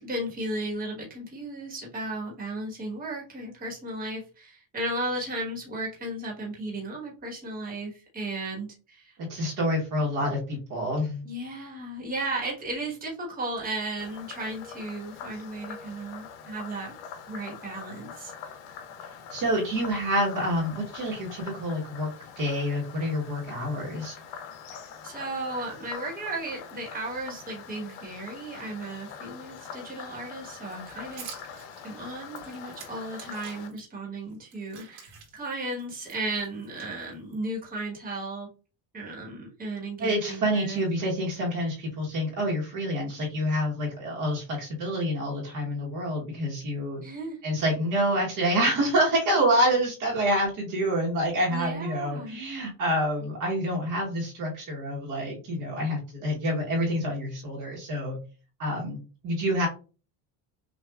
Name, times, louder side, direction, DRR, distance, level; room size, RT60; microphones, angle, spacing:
voice 1, 0.0-9.2 11.2-16.9 17.3-18.3 24.7-38.5 38.9-40.8 47.0-47.4 51.5-52.4, right 2 dB, 20° right, -2 dB, 1.2 m, -35 dB
voice 2, 9.3-11.2 19.3-22.1 22.4-24.2 40.0-47.0 47.4-58.2 58.6-59.7, equal, 40° right, -2 dB, 1.1 m, -27 dB
Frog, 14.0-33.7, left 7 dB, 75° left, 0.9 m, -44 dB
sound 1, 30.6-33.8 34.3-37.4, right 7 dB, 90° right, 2.0 m, -48 dB
6.0 x 2.4 x 2.3 m, 0.35 s
cardioid pair, 170°, 46 cm